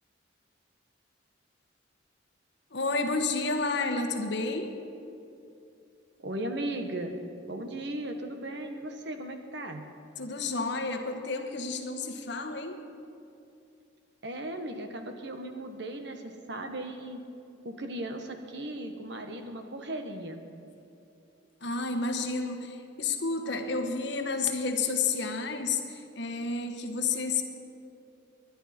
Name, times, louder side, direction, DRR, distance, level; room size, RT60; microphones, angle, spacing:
voice 1, 2.7-4.7 10.2-12.8 21.6-27.4, left 4 dB, 60° left, 6 dB, 1.2 m, -30 dB
voice 2, 6.2-7.2 7.5-9.8 14.2-17.2 17.6-20.4, right 1 dB, 60° right, 6 dB, 1.2 m, -37 dB
22.0 x 11.0 x 4.3 m, 2.6 s
head